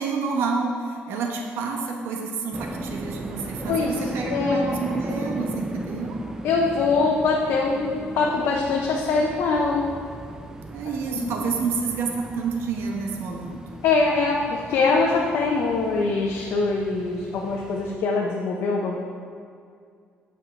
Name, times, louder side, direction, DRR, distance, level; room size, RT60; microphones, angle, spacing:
voice 1, 0.0-6.2 10.7-13.6, right 4 dB, 80° right, 1 dB, 1.1 m, -28 dB
sound 1, 2.5-18.0, right 2 dB, 15° right, 0.4 m, -37 dB
voice 2, 4.3-4.6 6.4-9.8 11.1-11.3 13.8-19.0, left 4 dB, 75° left, -2 dB, 0.8 m, -23 dB
8.6 x 5.7 x 4.5 m, 2.2 s
cardioid pair, 155°, 4 cm